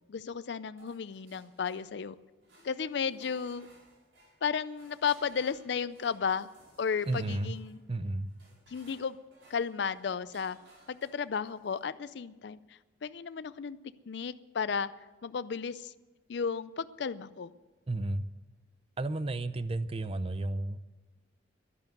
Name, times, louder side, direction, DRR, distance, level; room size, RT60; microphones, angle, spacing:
voice 1, 0.1-2.1 2.6-3.7 4.4-6.5 6.8-7.8 8.7-9.2 9.5-10.6 10.9-12.6 13.0-13.8 14.1-14.9 15.2-15.9 16.3-17.5, left 6 dB, 60° left, 15 dB, 0.4 m, -33 dB
sound 1, 0.8-2.1 2.4-11.9, right 1 dB, 85° right, 4.9 m, -61 dB
voice 2, 7.1-7.6 7.9-8.3 17.9-18.3 19.0-20.8, right 2 dB, 30° right, 13 dB, 0.5 m, -32 dB
11.5 x 10.5 x 9.2 m, 1.3 s
head